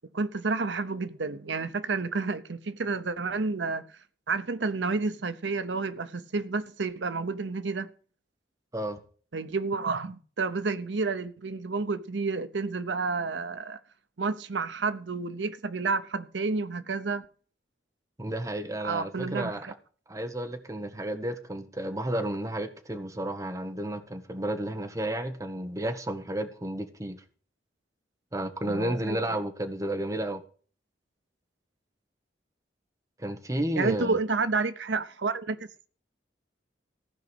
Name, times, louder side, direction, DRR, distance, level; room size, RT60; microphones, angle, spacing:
voice 1, 0.1-3.8 4.3-7.9 9.3-13.8 14.2-17.3 18.8-19.7 28.6-29.4 33.8-35.6, right 4 dB, 85° right, 0.8 m, -30 dB
voice 2, 18.2-19.7 20.1-27.2 28.3-30.4 33.2-34.2, right 1 dB, 20° right, 1.2 m, -32 dB
15.5 x 5.2 x 7.9 m
head